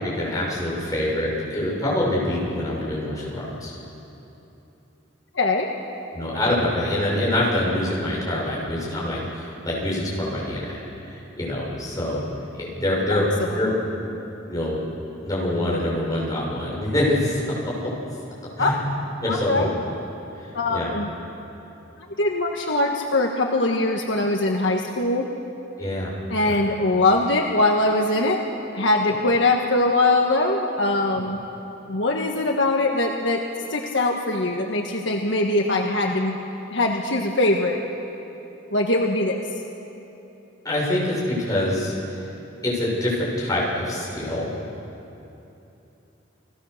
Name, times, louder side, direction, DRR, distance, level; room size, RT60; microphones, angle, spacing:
voice 1, 0.0-3.7 6.1-10.8 11.1-12.2 12.6-13.7 14.5-14.9 15.2-17.9 18.6-18.8 19.2-19.7 20.7-20.9 25.8-26.1 26.4-26.6 40.6-42.2 42.6-44.5, left 1 dB, 20° left, -5 dB, 6.6 m, -25 dB
voice 2, 5.3-5.7 13.4-13.6 18.6-18.7 19.3-19.7 20.5-21.1 22.2-25.3 26.3-28.4 28.7-31.4 31.9-33.4 33.7-36.4 36.7-37.8 38.7-39.4, left 2 dB, 65° left, 1 dB, 1.5 m, -22 dB
29.5 x 19.5 x 6.7 m, 3.0 s
head